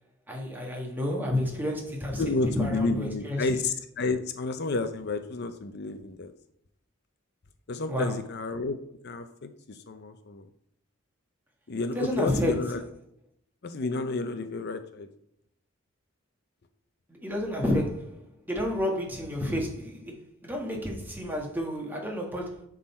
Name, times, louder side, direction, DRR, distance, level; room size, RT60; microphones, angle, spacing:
voice 1, 0.3-3.5 7.9-8.2 11.9-12.8 17.1-22.6, left 1 dB, 10° right, 1.4 m, -30 dB
voice 2, 2.2-6.3 7.7-8.8 9.0-10.4 11.7-12.8 13.6-15.1, left 3 dB, 55° left, 0.5 m, -31 dB
10.0 x 3.8 x 4.3 m
head